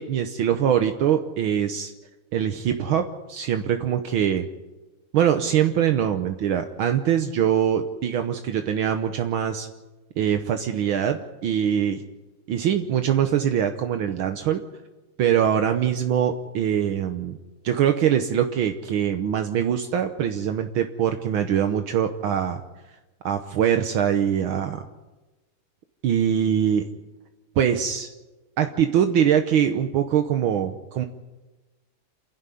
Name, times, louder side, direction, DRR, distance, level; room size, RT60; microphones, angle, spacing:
voice 1, 0.0-1.9 2.3-4.5 5.1-9.7 10.2-12.0 12.5-14.6 15.2-17.4 17.6-22.6 23.3-24.8 26.0-26.9 27.6-28.1 28.6-31.0, right 9 dB, 75° right, 7 dB, 1.7 m, -23 dB
28.0 x 11.0 x 9.9 m, 1.1 s
omnidirectional pair, 2.4 m